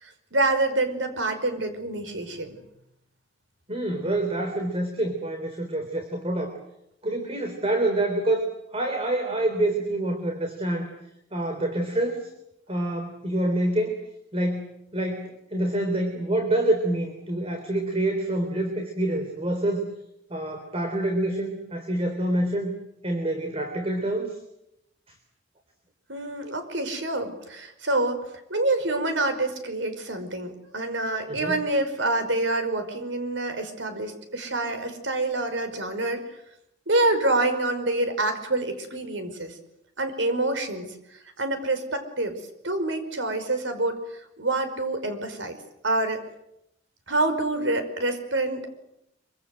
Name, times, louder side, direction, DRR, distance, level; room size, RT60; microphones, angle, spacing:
voice 1, 0.0-2.6 26.1-28.2 28.5-36.2 36.9-39.5 40.0-40.9 41.4-42.4 42.6-44.0 44.4-45.6 45.8-46.2 47.1-48.7, right 2 dB, 85° right, 8 dB, 5.3 m, -26 dB
voice 2, 3.7-6.5 7.0-10.9 11.3-12.3 12.7-14.0 14.3-19.9 20.3-22.7 23.0-24.4 31.3-31.6, right 1 dB, 35° right, 5 dB, 3.7 m, -27 dB
26.0 x 25.0 x 7.9 m, 0.82 s
head